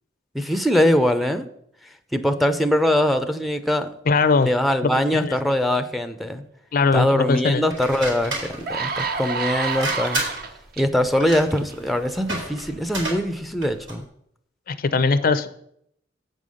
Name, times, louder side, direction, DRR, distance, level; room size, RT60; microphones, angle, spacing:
voice 1, 0.3-1.5 2.1-3.9 4.5-6.4 6.9-10.2 10.8-14.0, left 1 dB, ahead, 8 dB, 0.5 m, -22 dB
voice 2, 4.1-4.5 4.8-5.4 6.7-7.6 14.7-15.5, left 4 dB, 50° left, 13 dB, 0.5 m, -20 dB
sound 1, 7.7-14.0, right 2 dB, 80° right, 3.7 m, -32 dB
sound 2, 7.9-8.0 8.5-10.8 11.5-11.7, right 5 dB, 55° right, 0.7 m, -28 dB
8.1 x 5.4 x 6.3 m, 0.71 s
head